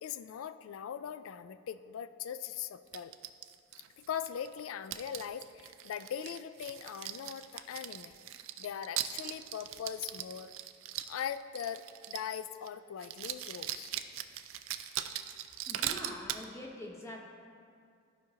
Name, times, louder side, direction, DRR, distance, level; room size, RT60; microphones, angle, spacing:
voice 1, 0.0-3.1 4.0-8.1 8.6-10.5 11.1-13.9, left 8 dB, 90° left, 13 dB, 0.3 m, -40 dB
sound 1, 2.9-4.5 4.9-12.4 12.7-12.8 13.0-16.5, right 12 dB, 75° right, 0.4 m, -40 dB
voice 2, 15.7-17.2, left 1 dB, 15° left, -2 dB, 0.8 m, -44 dB
13.0 x 5.1 x 2.8 m, 2.3 s
head